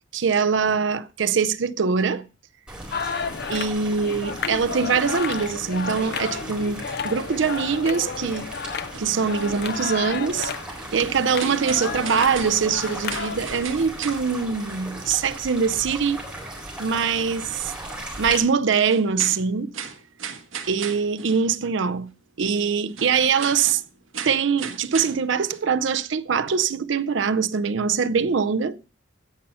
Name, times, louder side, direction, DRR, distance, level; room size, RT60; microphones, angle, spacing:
voice 1, 0.1-2.3 3.5-8.5 9.0-10.5 10.9-16.2 16.8-17.7 18.2-19.7 20.7-22.1 22.4-23.8 24.2-28.8, right 6 dB, 70° right, 0.5 m, -23 dB
sound 1, 2.7-18.4, right 1 dB, 5° right, 4.0 m, -37 dB
sound 2, 2.9-13.7, left 5 dB, 55° left, 0.6 m, -32 dB
sound 3, 8.4-8.5 8.9-10.1 10.5-10.8 11.2-14.7 15.1-15.2 15.8-15.9 16.1-16.2 16.7-16.8 17.3-17.4 18.1-18.2 18.7-21.7 22.0-22.1 22.8-25.6, right 7 dB, 85° right, 1.3 m, -37 dB
16.0 x 5.5 x 5.5 m
head